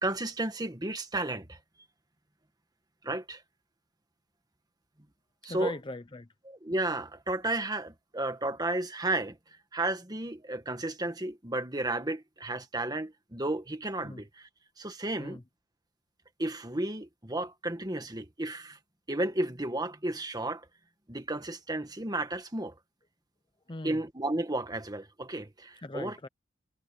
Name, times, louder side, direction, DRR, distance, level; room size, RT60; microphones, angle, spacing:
voice 1, 0.0-1.6 3.0-3.4 5.4-5.7 6.5-9.4 9.7-14.5 14.8-15.4 16.4-18.8 19.1-20.7 21.1-22.7 23.8-26.2, right 2 dB, 20° right, 1.7 m, -33 dB
voice 2, 5.5-6.3 14.0-14.2 15.2-15.4 23.7-24.0 25.8-26.3, left 2 dB, 25° left, 0.7 m, -39 dB
head